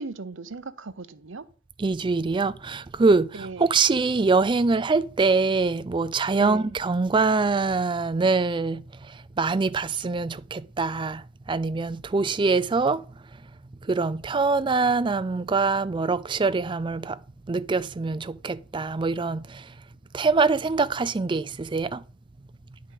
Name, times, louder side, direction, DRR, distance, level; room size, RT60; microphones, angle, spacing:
voice 1, 0.0-1.4 3.3-3.7 6.4-6.7, right 3 dB, 65° right, 0.8 m, -37 dB
voice 2, 1.8-13.0 13.9-17.2 17.5-19.6 20.1-22.0, right 4 dB, 25° right, 0.4 m, -24 dB
10.5 x 5.0 x 5.9 m
head